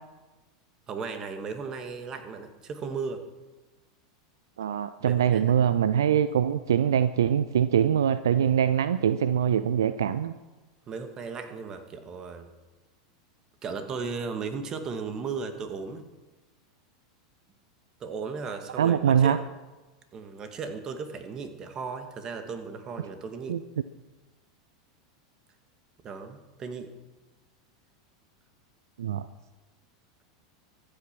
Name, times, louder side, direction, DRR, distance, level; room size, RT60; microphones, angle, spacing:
voice 1, 0.9-3.2 5.0-5.5 10.9-12.5 13.6-16.0 18.0-19.4 20.1-23.6 26.0-26.9, right 5 dB, 30° right, 8 dB, 2.0 m, -36 dB
voice 2, 4.6-10.3 18.8-19.4 23.5-23.6 29.0-29.2, right 9 dB, 65° right, 13 dB, 0.6 m, -23 dB
24.0 x 8.9 x 6.1 m, 1.2 s
figure-of-eight pair, 85°, 2 cm